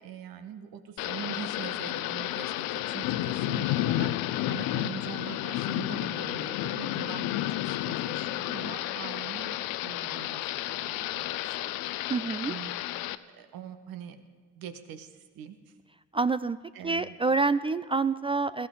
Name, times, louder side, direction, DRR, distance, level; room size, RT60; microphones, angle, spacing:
voice 1, 0.0-12.1 12.5-12.8 13.3-14.2 14.5-15.7 16.7-17.1, right 9 dB, 65° right, 8 dB, 1.4 m, -43 dB
Thunder / Rain, 1.0-13.2, left 15 dB, 70° left, 0.7 m, -31 dB
voice 2, 12.1-12.5 16.1-16.6 16.8-18.7, right 4 dB, 15° right, 15 dB, 0.3 m, -27 dB
21.0 x 14.5 x 3.9 m, 1.5 s
hypercardioid pair, 55°, 37 cm